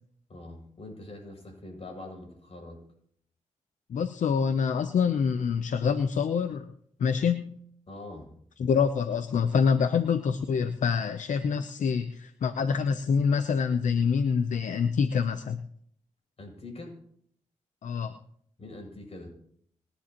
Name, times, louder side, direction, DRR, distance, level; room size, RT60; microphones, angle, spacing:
voice 1, 0.3-2.8 7.9-8.3 16.4-17.0 18.6-19.3, left 2 dB, 55° left, 1 dB, 7.1 m, -43 dB
voice 2, 3.9-6.7 7.0-7.5 8.6-15.6 17.8-18.2, left 6 dB, 80° left, 10 dB, 0.7 m, -26 dB
27.0 x 10.0 x 3.0 m, 0.65 s
cardioid pair, 50°, 13 cm